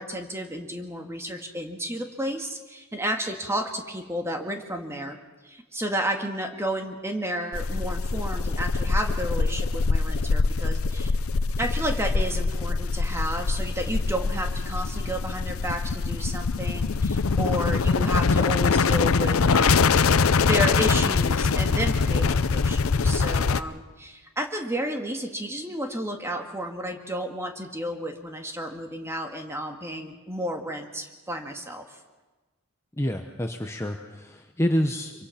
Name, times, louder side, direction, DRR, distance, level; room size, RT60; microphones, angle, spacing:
voice 1, 0.0-5.2 5.4-11.2 11.6-31.8, equal, 15° right, 3 dB, 1.9 m, -32 dB
sound 1, 7.5-23.6, left 4 dB, 75° left, 0.7 m, -23 dB
voice 2, 33.0-35.1, equal, 15° left, 4 dB, 1.0 m, -27 dB
25.0 x 24.0 x 5.9 m, 1.2 s
head